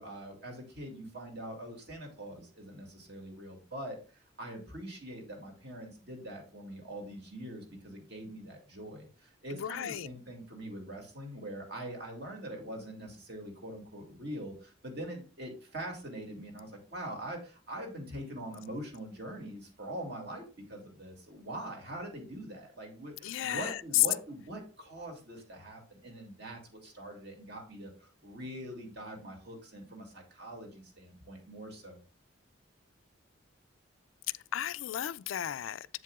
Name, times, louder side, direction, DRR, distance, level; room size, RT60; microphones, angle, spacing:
voice 1, 0.0-32.0, right 1 dB, 55° right, 2.4 m, -43 dB
voice 2, 9.5-10.1 23.2-24.1 34.5-36.0, left 14 dB, 80° left, 0.3 m, -32 dB
7.7 x 7.4 x 2.4 m
head